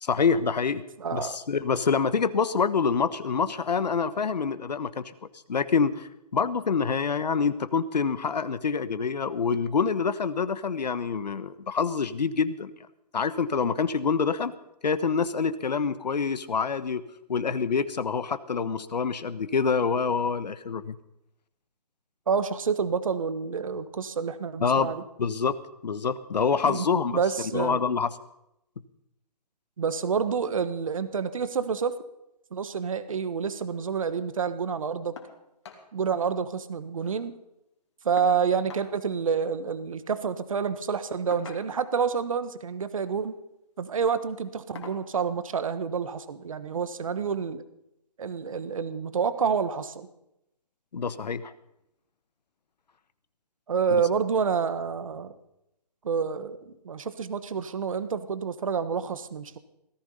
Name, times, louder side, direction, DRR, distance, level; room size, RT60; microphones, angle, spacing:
voice 1, 0.0-0.8 1.1-5.0 5.5-12.7 13.1-14.5 14.8-17.0 17.3-21.0 24.6-24.9 25.2-25.6 25.8-27.2 27.5-28.1 50.9-51.5, left 5 dB, 80° left, 14 dB, 1.3 m, -26 dB
voice 2, 1.0-1.4 22.3-25.0 26.6-26.9 27.1-27.8 29.8-32.0 32.5-35.2 35.9-37.4 38.0-43.3 43.8-47.6 48.2-50.1 53.7-55.3 56.0-59.6, right 6 dB, 50° right, 12 dB, 1.3 m, -28 dB
sound 1, 35.2-35.4 35.6-35.9 36.2-36.3 36.6-37.3 38.2-38.9 40.1-40.3 41.3-42.0 43.0-43.3 43.8-44.0 44.8-45.1 46.3-46.4 46.9-47.0, left 5 dB, 40° left, 2.7 m, -45 dB
17.5 x 14.5 x 5.5 m, 0.85 s
hypercardioid pair, 175°, 21 cm